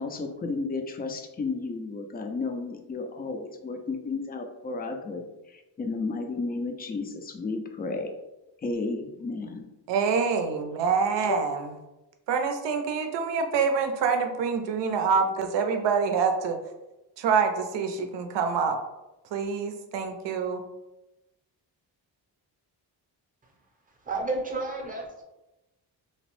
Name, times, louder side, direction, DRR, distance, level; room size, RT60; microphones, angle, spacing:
voice 1, 0.0-5.2 5.5-8.1 8.6-9.6 11.3-11.4, left 3 dB, 25° left, 5 dB, 0.3 m, -33 dB
voice 2, 9.9-11.8 12.3-16.6 17.2-18.8 19.3-20.6, right 5 dB, 80° right, 6 dB, 0.5 m, -26 dB
voice 3, 24.1-25.2, right 3 dB, 20° right, 0 dB, 0.6 m, -31 dB
2.9 x 2.0 x 3.0 m, 1.0 s
cardioid pair, 95°, 42 cm